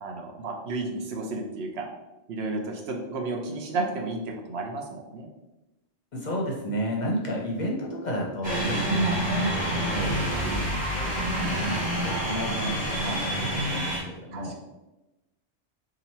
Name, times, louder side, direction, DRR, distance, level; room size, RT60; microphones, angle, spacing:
voice 1, 0.0-1.9 2.3-5.3 9.1-9.2 10.3-10.5 13.0-13.2 14.3-14.6, right 3 dB, 70° right, 1 dB, 0.9 m, -32 dB
voice 2, 6.1-10.2 10.9-14.6, equal, 50° left, -2 dB, 0.6 m, -31 dB
sound 1, 8.4-14.0, equal, 40° right, 1.4 m, -28 dB
2.9 x 2.6 x 4.1 m, 0.99 s
omnidirectional pair, 1.2 m